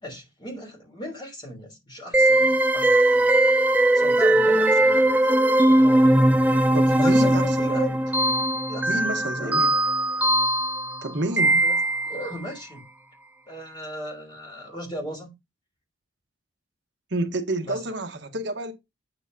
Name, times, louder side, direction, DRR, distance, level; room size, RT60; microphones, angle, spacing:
voice 1, 0.0-3.3 3.9-5.1 6.1-6.5 6.8-8.1 8.7-9.6 11.6-11.8 12.0-12.8 13.5-15.3 17.6-17.8, left 1 dB, 25° left, 3.3 m, -37 dB
sound 1, 2.1-12.3, right 1 dB, 10° right, 0.4 m, -20 dB
voice 2, 6.7-7.8 8.9-9.8 11.0-11.6 17.1-18.7, right 1 dB, 60° right, 1.1 m, -29 dB
8.4 x 8.0 x 2.7 m
head